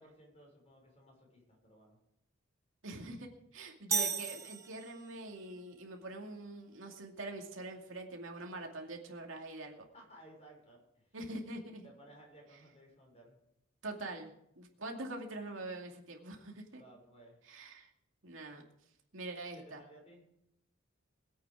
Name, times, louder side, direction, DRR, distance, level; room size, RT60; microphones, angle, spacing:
voice 1, 0.0-2.0 9.9-11.2 11.8-13.4 16.7-17.4 19.5-20.2, right 1 dB, 35° left, -1 dB, 6.1 m, -58 dB
voice 2, 2.8-9.9 11.1-11.9 13.8-16.8 17.5-17.9 18.2-18.6 19.1-19.8, right 2 dB, 80° right, 2 dB, 2.5 m, -44 dB
sound 1, 3.9-5.3, right 5 dB, 15° right, 0.7 m, -35 dB
21.5 x 8.8 x 5.0 m, 0.77 s
head